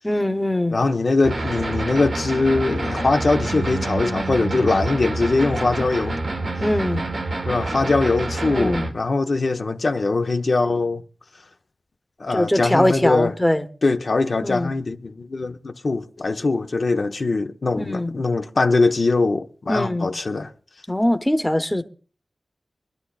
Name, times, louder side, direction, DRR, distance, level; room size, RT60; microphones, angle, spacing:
voice 1, 0.0-0.8 6.6-7.0 8.5-8.9 12.3-13.6 14.4-14.7 17.8-18.1 19.7-20.1 20.9-21.8, left 1 dB, 10° left, 0.9 m, -21 dB
voice 2, 0.7-6.2 7.5-11.0 12.2-13.3 13.8-20.5, left 3 dB, 65° left, 0.8 m, -22 dB
sound 1, 1.2-8.9, right 2 dB, 80° right, 1.5 m, -27 dB
24.5 x 11.5 x 2.4 m
wide cardioid pair, 55°, 0 cm